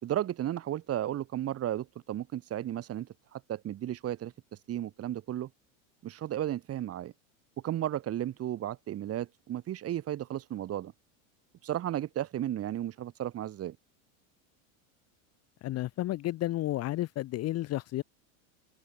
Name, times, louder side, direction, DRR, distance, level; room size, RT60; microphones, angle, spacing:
voice 1, 0.0-4.3 4.7-5.5 6.0-7.1 7.6-10.9 11.6-13.8, right 12 dB, 35° right, 2.9 m, -34 dB
voice 2, 15.6-18.0, left 15 dB, 40° left, 1.1 m, -32 dB
supercardioid pair, 130°, 41 cm